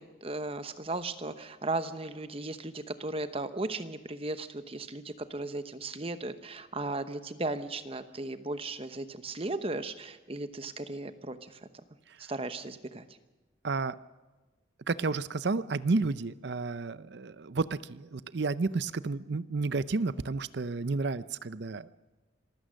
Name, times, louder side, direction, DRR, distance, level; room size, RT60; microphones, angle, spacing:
voice 1, 0.0-11.6 12.2-13.1, right 2 dB, 30° right, 11 dB, 0.9 m, -36 dB
voice 2, 13.6-13.9 14.9-21.9, right 3 dB, 55° right, 16 dB, 0.6 m, -31 dB
26.0 x 15.5 x 6.4 m, 1.2 s
head